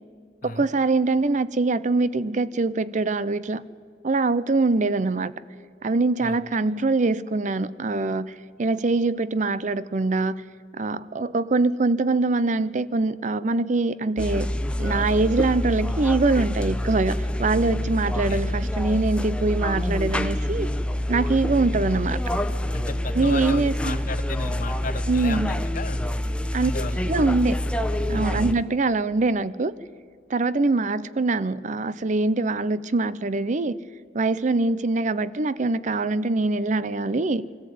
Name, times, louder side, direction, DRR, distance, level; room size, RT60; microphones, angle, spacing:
voice 1, 0.4-3.6 4.0-5.3 5.8-10.4 10.8-14.5 14.8-20.7 21.1-22.2 23.1-24.0 25.1-25.5 26.5-26.7 27.1-27.5 28.1-29.7 30.3-33.8 34.1-37.4, right 3 dB, 45° right, 17 dB, 0.6 m, -23 dB
sound 1, 14.2-28.5, left 1 dB, 5° left, 0.8 m, -26 dB
voice 2, 22.7-26.1 26.6-27.2 28.3-28.6, left 3 dB, 50° left, 11 dB, 1.1 m, -34 dB
23.0 x 15.0 x 9.3 m, 2.2 s
head